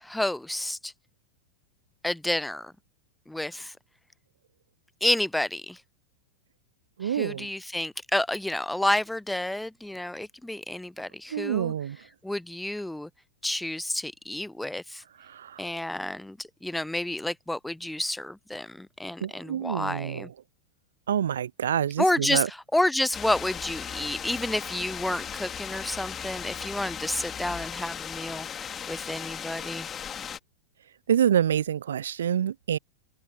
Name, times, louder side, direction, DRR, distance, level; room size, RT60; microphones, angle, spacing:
voice 1, 0.0-0.9 2.0-2.7 3.3-3.7 5.0-5.8 7.0-11.7 12.2-13.1 13.4-15.0 15.6-20.3 22.0-29.9, left 1 dB, 5° left, 0.5 m, -30 dB
voice 2, 7.0-7.5 11.3-12.0 15.3-15.6 19.2-20.3 21.1-22.5 31.1-32.8, right 9 dB, 65° right, 0.7 m, -26 dB
sound 1, 23.1-30.4, left 8 dB, 25° left, 3.0 m, -37 dB
figure-of-eight pair, 90°, 0 cm